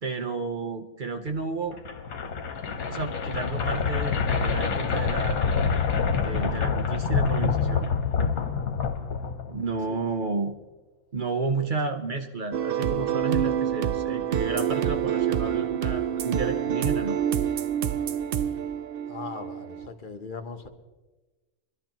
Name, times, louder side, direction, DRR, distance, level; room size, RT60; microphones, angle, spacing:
voice 1, 0.0-1.8 2.9-5.5 6.2-7.9 9.5-10.6 11.1-17.2, right 3 dB, 45° right, 5 dB, 0.7 m, -31 dB
sound 1, 1.7-9.7, left 5 dB, 70° left, 1.5 m, -26 dB
sound 2, 12.5-19.9, right 9 dB, 80° right, 0.5 m, -27 dB
voice 2, 19.1-20.7, left 4 dB, 40° left, 6 dB, 1.0 m, -39 dB
23.5 x 12.0 x 3.0 m, 1.2 s
omnidirectional pair, 1.6 m